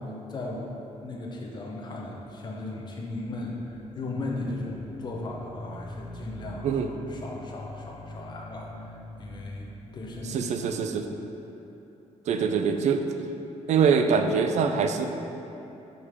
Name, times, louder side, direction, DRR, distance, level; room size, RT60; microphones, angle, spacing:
voice 1, 0.0-10.5, left 2 dB, 35° left, -1 dB, 0.8 m, -36 dB
voice 2, 10.3-11.1 12.3-13.1 13.7-15.1, right 6 dB, 65° right, 6 dB, 0.4 m, -24 dB
5.4 x 4.9 x 4.9 m, 3.0 s
wide cardioid pair, 175°, 13 cm